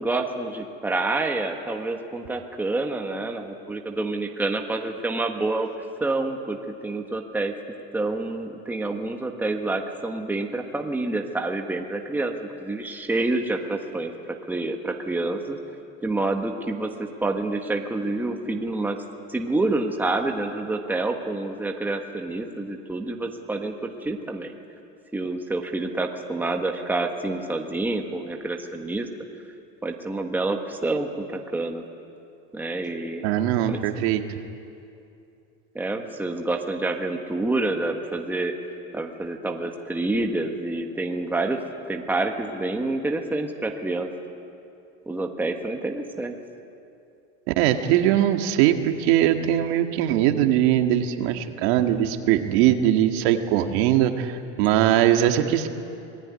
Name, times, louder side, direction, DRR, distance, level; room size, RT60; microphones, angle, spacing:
voice 1, 0.0-5.7 6.0-7.5 7.9-14.1 14.5-15.6 16.0-19.0 19.3-24.5 25.1-29.1 29.8-31.9 32.5-33.3 33.7-33.8 35.7-38.5 38.9-41.6 41.9-44.1 45.1-46.4, right 2 dB, 5° right, 3 dB, 1.5 m, -28 dB
voice 2, 33.2-34.2 47.6-55.7, right 11 dB, 70° right, 5 dB, 2.0 m, -21 dB
26.0 x 19.5 x 9.7 m, 2.6 s
supercardioid pair, 150°, 33 cm